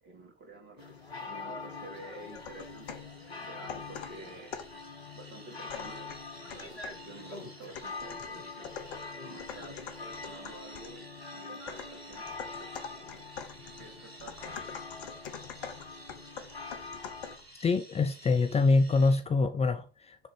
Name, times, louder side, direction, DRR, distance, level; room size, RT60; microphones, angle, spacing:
voice 1, 0.0-3.1 3.4-4.6 5.1-6.2 6.5-8.7 9.2-13.3 13.8-14.6, right 2 dB, 35° right, 3.1 m, -50 dB
sound 1, 0.8-17.4, left 4 dB, 85° left, 1.2 m, -44 dB
sound 2, 1.7-19.2, right 2 dB, 85° right, 1.6 m, -53 dB
sound 3, 2.3-3.1 3.7-4.8 5.7-7.1 7.7-11.0 11.7-17.5, left 7 dB, 60° left, 1.2 m, -45 dB
voice 2, 17.6-20.3, left 3 dB, 20° left, 0.7 m, -25 dB
9.7 x 4.0 x 5.0 m
figure-of-eight pair, 70°, 30 cm